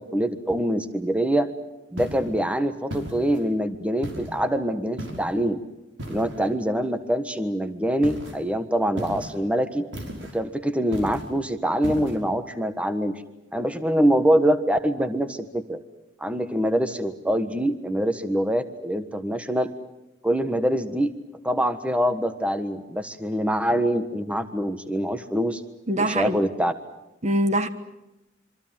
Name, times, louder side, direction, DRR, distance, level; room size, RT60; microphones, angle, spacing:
voice 1, 0.0-1.5 1.9-5.6 6.1-9.9 10.3-13.2 13.5-15.8 16.2-19.7 20.2-21.1 21.4-25.6 26.0-26.7, equal, 5° right, 1.4 m, -24 dB
sound 1, 2.0-2.3 2.9-3.5 4.0-4.4 5.0-5.4 6.0-6.5 8.0-8.4 9.0-9.4 9.9-10.4 10.9-11.3 11.8-12.2, right 1 dB, 80° right, 5.5 m, -35 dB
voice 2, 25.9-26.4 27.2-27.7, right 1 dB, 40° right, 1.4 m, -23 dB
26.5 x 25.5 x 7.5 m
head